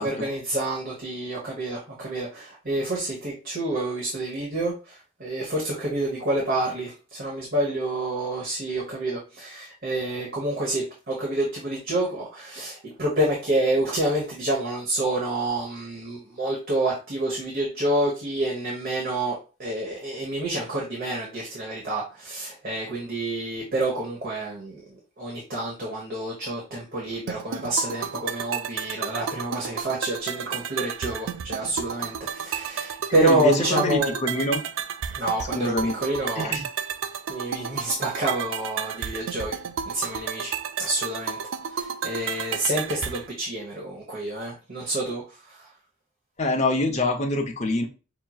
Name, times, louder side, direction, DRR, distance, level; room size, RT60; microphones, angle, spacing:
voice 1, 0.0-24.8 25.2-34.1 35.1-36.5 37.3-39.5 39.9-40.5 40.8-41.4 41.7-45.2, right 1 dB, 45° right, -3 dB, 1.1 m, -28 dB
sound 1, 27.3-43.3, right 7 dB, 75° right, 0.4 m, -32 dB
voice 2, 33.2-34.6 35.6-35.9 36.4-36.7 46.4-47.9, left 2 dB, 35° left, 3 dB, 0.8 m, -25 dB
5.5 x 3.0 x 2.3 m, 0.32 s
head